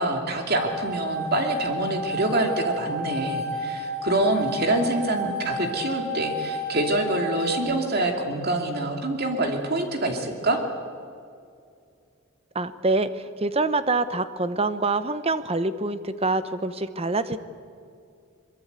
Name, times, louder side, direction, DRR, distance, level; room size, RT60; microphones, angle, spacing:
voice 1, 0.0-10.6, right 2 dB, 45° right, 3 dB, 2.8 m, -26 dB
sound 1, 0.5-7.6, left 1 dB, 85° right, 5.2 m, -31 dB
voice 2, 12.5-17.4, right 3 dB, 25° right, 12 dB, 0.9 m, -25 dB
23.0 x 22.0 x 8.2 m, 2.3 s
head